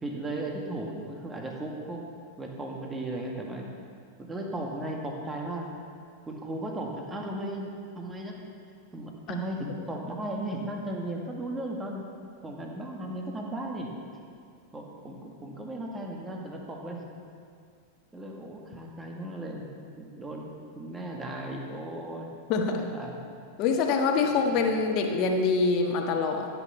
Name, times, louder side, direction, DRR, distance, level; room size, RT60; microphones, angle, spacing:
voice 1, 0.0-2.0 2.4-3.7 4.2-5.7 6.3-8.5 8.9-12.0 12.4-13.9 14.7-17.0 18.1-19.7 20.0-22.3 22.8-23.2 24.2-24.5, right 1 dB, 15° right, 0 dB, 2.0 m, -36 dB
voice 2, 22.5-22.8 23.6-26.5, left 4 dB, 40° left, 3 dB, 1.5 m, -25 dB
15.0 x 9.1 x 5.7 m, 2.2 s
figure-of-eight pair, 90°, 0 cm